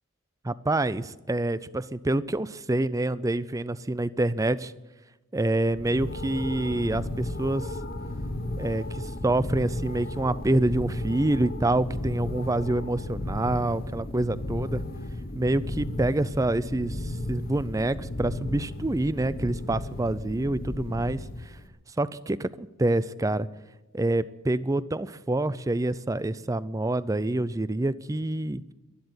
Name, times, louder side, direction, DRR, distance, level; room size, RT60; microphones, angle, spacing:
voice 1, 0.4-4.7 5.3-7.8 8.6-14.8 15.3-21.6 21.9-23.5 23.9-28.6, right 2 dB, 15° right, 17 dB, 0.4 m, -27 dB
sound 1, 5.7-21.7, left 1 dB, 45° left, 1.1 m, -34 dB
12.5 x 12.0 x 9.5 m, 1.1 s
head